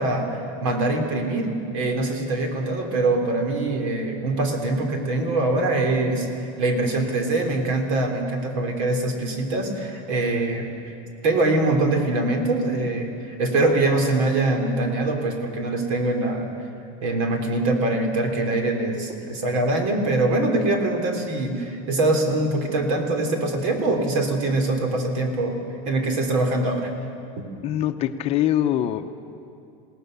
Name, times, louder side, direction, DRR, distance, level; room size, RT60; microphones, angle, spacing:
voice 1, 0.0-1.5 1.7-6.3 6.6-10.9 11.2-16.5 17.0-25.6 25.9-26.9 27.4-27.5, right 2 dB, 65° right, 4 dB, 3.9 m, -23 dB
voice 2, 27.6-29.1, left 12 dB, 35° left, 8 dB, 0.8 m, -23 dB
28.0 x 18.0 x 6.8 m, 2.5 s
supercardioid pair, 165°, 18 cm